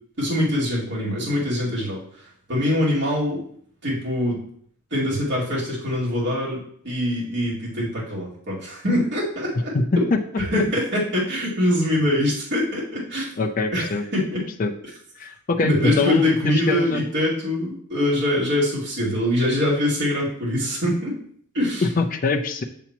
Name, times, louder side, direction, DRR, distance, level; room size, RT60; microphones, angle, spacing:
voice 1, 0.2-3.4 3.8-4.4 4.9-10.1 10.4-13.3 13.7-14.4 15.6-21.1 21.5-21.9, left 1 dB, 55° right, -7 dB, 2.3 m, -23 dB
voice 2, 13.4-14.0 14.6-14.7 15.2-17.0 22.0-22.6, left 3 dB, 40° left, 3 dB, 0.5 m, -24 dB
7.0 x 7.0 x 3.0 m, 0.63 s
head